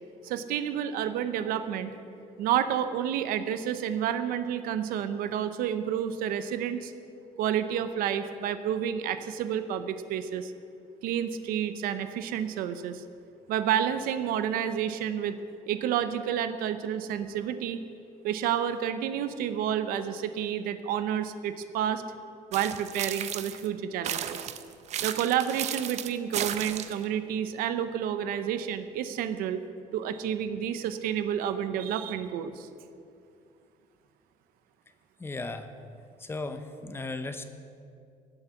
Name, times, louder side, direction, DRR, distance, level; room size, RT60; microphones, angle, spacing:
voice 1, 0.2-1.9 2.4-6.9 7.4-10.5 11.0-13.0 13.5-15.4 15.7-17.8 18.2-22.0 22.5-24.5 25.0-29.6 29.9-32.7, right 9 dB, 90° right, 10 dB, 0.7 m, -30 dB
sound 1, 22.5-23.7 24.0-27.0, right 10 dB, 50° right, 0.6 m, -34 dB
voice 2, 35.2-35.7 36.2-37.4, left 3 dB, 15° left, 8 dB, 0.7 m, -36 dB
16.0 x 8.0 x 5.8 m, 2.4 s
cardioid pair, 150°, 15 cm